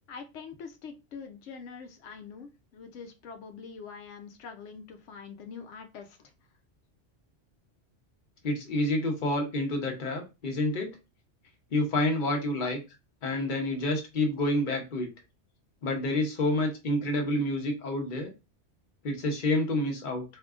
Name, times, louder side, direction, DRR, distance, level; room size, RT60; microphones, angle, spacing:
voice 1, 0.1-6.2, left 5 dB, 90° left, 5 dB, 0.9 m, -44 dB
voice 2, 8.4-10.9 11.7-12.8 13.2-15.1 15.8-18.3 19.0-20.2, left 1 dB, 50° left, 2 dB, 0.9 m, -28 dB
3.7 x 2.7 x 2.4 m, 0.27 s
omnidirectional pair, 1.2 m